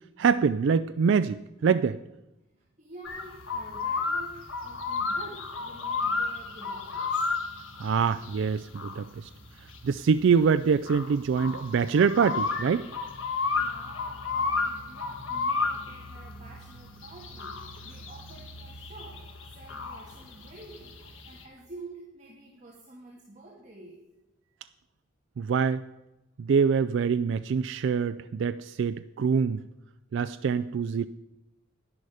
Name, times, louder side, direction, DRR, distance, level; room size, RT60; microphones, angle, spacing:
voice 1, 0.2-2.0 7.8-9.3 9.8-12.9 25.4-25.8 26.4-29.6 30.1-31.1, right 6 dB, 65° right, 12 dB, 0.3 m, -25 dB
voice 2, 2.6-7.3 13.5-19.3 19.5-24.0, right 2 dB, 35° right, -3 dB, 1.8 m, -49 dB
sound 1, 3.0-21.4, left 4 dB, 75° left, 1.5 m, -33 dB
11.0 x 10.5 x 4.9 m, 0.97 s
head